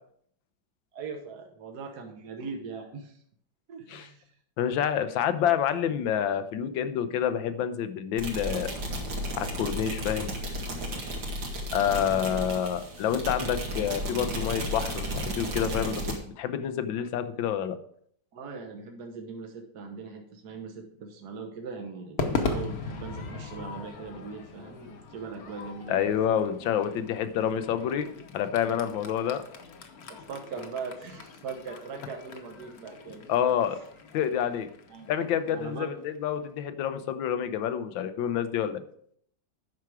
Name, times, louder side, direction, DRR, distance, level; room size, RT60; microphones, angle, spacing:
voice 1, 0.9-3.2 3.7-4.3 18.3-26.1 30.1-33.3 34.9-35.1 35.5-36.0, right 5 dB, 60° right, 3 dB, 1.5 m, -40 dB
voice 2, 4.6-8.7 9.3-10.3 11.7-16.0 16.4-17.8 25.9-29.4 33.3-33.8 34.1-34.7 35.1-38.8, left 9 dB, 85° left, 10 dB, 1.5 m, -28 dB
sound 1, 8.2-16.1, equal, 80° right, 2.7 m, -33 dB
Crowd / Fireworks, 22.2-36.6, left 4 dB, 55° left, 1.3 m, -39 dB
9.4 x 6.0 x 4.8 m, 0.65 s
omnidirectional pair, 2.1 m